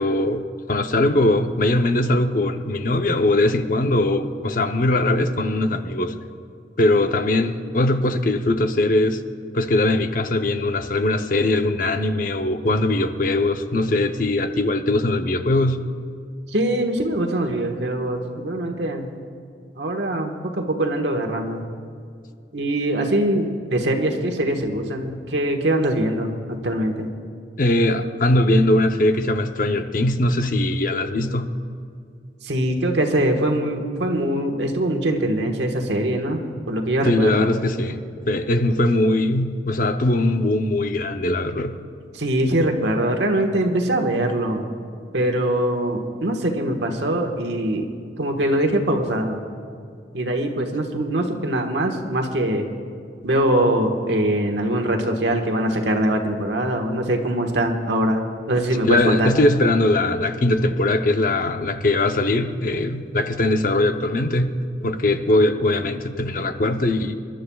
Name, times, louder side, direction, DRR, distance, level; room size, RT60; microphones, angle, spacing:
voice 1, 0.0-6.1 6.8-9.2 9.5-15.9 27.6-31.6 37.1-38.0 38.3-41.8 58.8-67.1, left 1 dB, 50° left, 7 dB, 0.7 m, -21 dB
voice 2, 16.5-19.1 19.8-21.6 22.5-27.1 32.4-37.5 42.1-44.7 45.1-47.9 48.2-49.4 50.1-52.7 53.2-58.2 58.5-59.3, right 1 dB, 85° right, 3 dB, 1.4 m, -22 dB
28.0 x 11.5 x 2.3 m, 2.2 s
head